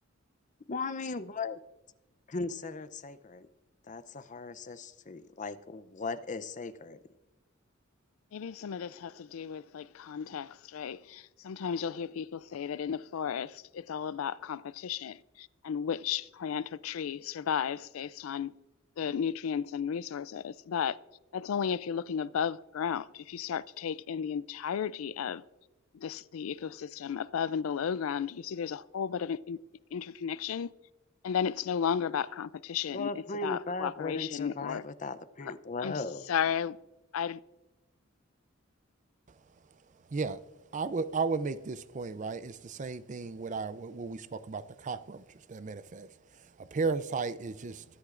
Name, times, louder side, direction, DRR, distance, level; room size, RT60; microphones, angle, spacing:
voice 1, 0.7-1.6 2.3-3.5 3.9-7.0 32.9-36.3, left 3 dB, 40° left, 0.6 m, -37 dB
voice 2, 8.3-18.5 19.0-21.0 21.3-25.4 25.9-29.6 29.9-30.7 31.2-34.8 35.8-36.0 36.3-36.8 37.1-37.4, left 7 dB, 85° left, 0.4 m, -34 dB
voice 3, 40.7-45.2 45.5-46.1 46.6-47.9, right 4 dB, 35° right, 0.5 m, -34 dB
21.5 x 9.8 x 2.5 m
head